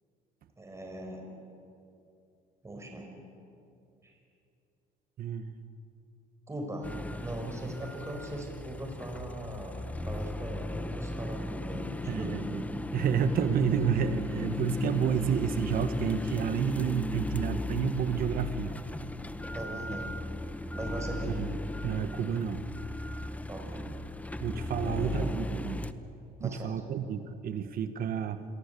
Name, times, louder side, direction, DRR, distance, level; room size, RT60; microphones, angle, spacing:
voice 1, 0.6-1.3 2.6-3.1 4.0-4.2 6.5-6.9 7.2-12.4 19.5-20.2 20.7-21.4 23.5-23.9 24.8-25.3 26.4-26.7, right 1 dB, 15° right, 2 dB, 5.5 m, -40 dB
voice 2, 5.2-5.6 12.1-12.6 12.9-18.7 21.2-22.6 24.4-25.8 26.4-28.4, right 7 dB, 60° right, 10 dB, 1.5 m, -30 dB
sound 1, 6.8-25.9, left 1 dB, 10° left, 1.1 m, -36 dB
27.5 x 23.0 x 8.5 m, 2.7 s
cardioid pair, 110°, 17 cm